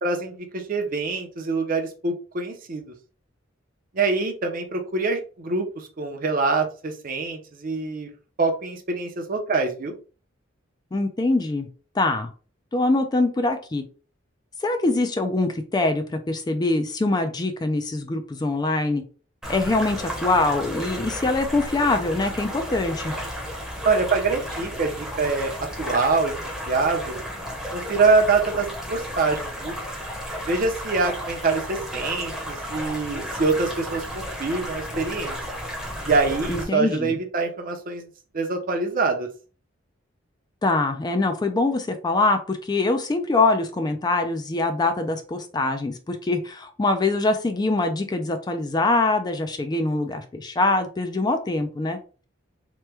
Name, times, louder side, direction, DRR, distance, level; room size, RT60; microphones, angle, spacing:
voice 1, 0.0-2.9 3.9-8.1 8.4-9.9 23.8-27.2 27.7-29.8 30.5-35.4 36.1-38.1 38.3-39.3, right 4 dB, 45° right, 0.6 m, -25 dB
voice 2, 10.9-11.7 12.0-12.3 12.7-13.8 14.6-19.0 19.5-23.2 36.5-37.2 40.6-52.0, left 2 dB, 20° left, 0.3 m, -23 dB
sound 1, 19.4-36.6, equal, ahead, 0.7 m, -33 dB
2.9 x 2.2 x 3.3 m
head